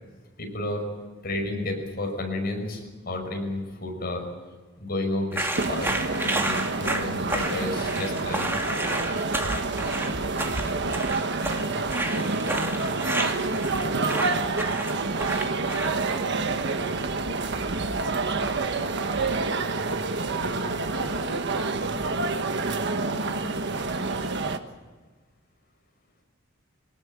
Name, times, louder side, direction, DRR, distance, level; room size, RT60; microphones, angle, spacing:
voice 1, 0.4-0.9 1.2-4.3 4.8-8.6 14.0-14.3, left 2 dB, 50° left, 3 dB, 5.8 m, -32 dB
sound 1, 5.3-16.1, right 1 dB, 10° right, 2.3 m, -31 dB
sound 2, 5.6-24.6, right 3 dB, 60° right, 1.4 m, -28 dB
voice 2, 10.8-11.2 11.5-12.6 13.1-13.7 14.6-20.3 20.9-24.5, right 2 dB, 90° right, 3 dB, 6.1 m, -43 dB
23.5 x 19.5 x 9.0 m, 1.3 s
head